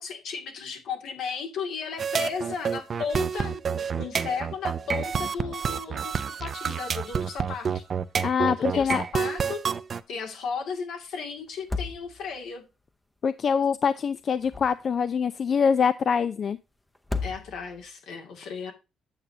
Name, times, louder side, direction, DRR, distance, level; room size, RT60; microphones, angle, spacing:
voice 1, 0.0-7.8 8.5-9.6 10.1-12.6 17.2-18.7, left 5 dB, 80° left, 2.2 m, -35 dB
sound 1, 2.0-10.0, right 6 dB, 45° right, 0.5 m, -29 dB
voice 2, 8.2-9.0 13.2-16.6, left 6 dB, 50° left, 0.4 m, -24 dB
sound 2, 8.7-9.2 9.5-9.6 11.5-12.5 14.2-15.1 16.9-17.9, left 3 dB, 10° left, 0.7 m, -35 dB
8.8 x 6.8 x 2.7 m
cardioid pair, 90°, 0 cm